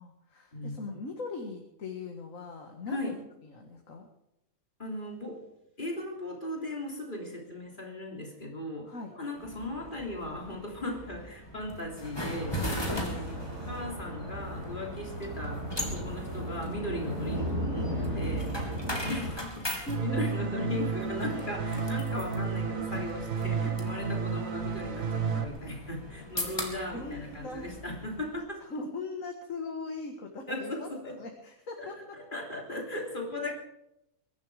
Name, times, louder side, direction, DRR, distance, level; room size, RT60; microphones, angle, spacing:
voice 1, 0.0-3.1 3.5-4.1 8.9-9.1 12.9-13.1 19.6-20.2 22.8-22.9 26.8-27.7 28.6-30.9 31.2-32.2, left 3 dB, 70° left, 3 dB, 2.1 m, -40 dB
voice 2, 2.9-3.2 4.8-5.4 5.8-28.6 30.5-31.2 31.8-31.9 32.1-33.5, left 1 dB, 35° left, 0 dB, 3.5 m, -37 dB
sound 1, 9.4-28.4, equal, 20° left, 3.0 m, -40 dB
sound 2, 12.3-19.3, right 1 dB, 55° right, 5.1 m, -35 dB
sound 3, 19.9-25.4, right 5 dB, 75° right, 1.8 m, -32 dB
22.5 x 11.5 x 5.0 m, 0.83 s
omnidirectional pair, 1.4 m